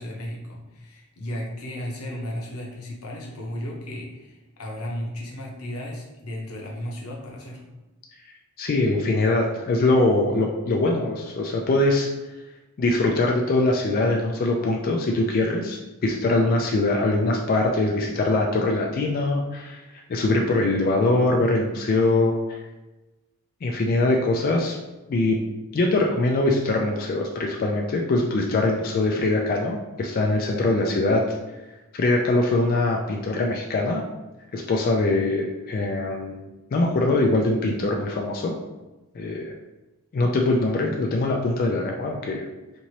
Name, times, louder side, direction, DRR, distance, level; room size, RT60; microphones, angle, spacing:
voice 1, 0.0-7.6, equal, 90° left, -2 dB, 0.8 m, -34 dB
voice 2, 8.6-12.1 12.8-19.8 20.1-22.6 23.6-24.8 25.1-25.4 25.7-31.2 31.9-34.0 34.5-36.5 36.7-38.6 39.2-39.5 40.1-42.5, left 2 dB, 40° left, 1 dB, 0.3 m, -22 dB
3.0 x 2.6 x 2.8 m, 1.1 s
head